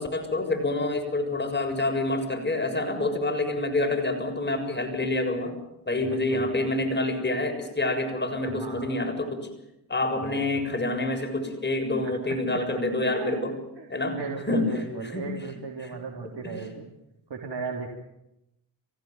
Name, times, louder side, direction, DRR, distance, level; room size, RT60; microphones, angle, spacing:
voice 1, 0.0-5.5 5.9-9.5 9.9-13.5 13.9-14.2 14.5-14.6 15.1-15.2 16.4-16.6, left 2 dB, 20° left, 5 dB, 7.0 m, -27 dB
voice 2, 6.0-6.6 8.4-8.9 10.3-10.5 12.0-12.6 13.1-13.4 13.8-16.9 17.3-18.0, right 4 dB, 55° right, 1 dB, 3.8 m, -36 dB
27.5 x 16.0 x 9.4 m, 0.86 s
hypercardioid pair, 45°, 47 cm